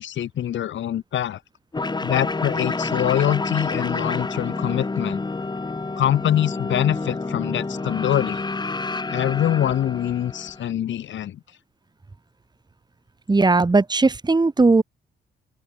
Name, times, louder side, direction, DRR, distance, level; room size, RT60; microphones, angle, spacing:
voice 1, 0.0-1.4 2.0-5.2 6.0-8.4 9.1-11.4, left 11 dB, 70° left, 3.9 m, -24 dB
sound 1, 1.7-10.7, left 3 dB, 20° left, 3.2 m, -28 dB
voice 2, 13.3-14.8, right 3 dB, 20° right, 3.7 m, -17 dB
open air
cardioid pair, 90°, 20 cm